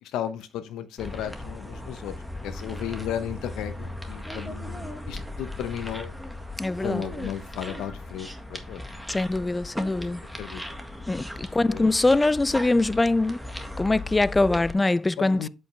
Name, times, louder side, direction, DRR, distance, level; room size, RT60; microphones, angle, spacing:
voice 1, 0.0-2.1 2.4-6.1 6.8-8.8 9.3-9.6 10.4-10.8 11.1-11.9 15.2-15.5, left 10 dB, 80° left, 0.9 m, -35 dB
sound 1, 1.0-14.7, left 1 dB, ahead, 1.7 m, -37 dB
voice 2, 6.6-7.0 9.1-10.2 11.1-13.4 13.8-15.5, left 2 dB, 20° left, 0.4 m, -23 dB
8.0 x 5.5 x 3.3 m
supercardioid pair, 55°, 0 cm